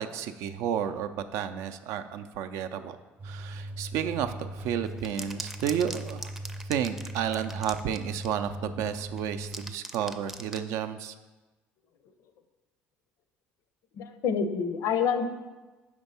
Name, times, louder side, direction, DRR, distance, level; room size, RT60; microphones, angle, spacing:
voice 1, 0.0-3.0 3.2-6.3 6.7-11.1, right 9 dB, 70° right, 9 dB, 0.4 m, -32 dB
sound 1, 3.2-9.7, right 1 dB, 40° right, 0.7 m, -39 dB
sound 2, 4.8-8.5 9.2-10.7, right 1 dB, 5° right, 0.5 m, -41 dB
voice 2, 14.0-15.3, left 6 dB, 65° left, 9 dB, 0.6 m, -27 dB
5.1 x 3.5 x 5.5 m, 1.2 s
supercardioid pair, 80°, 5 cm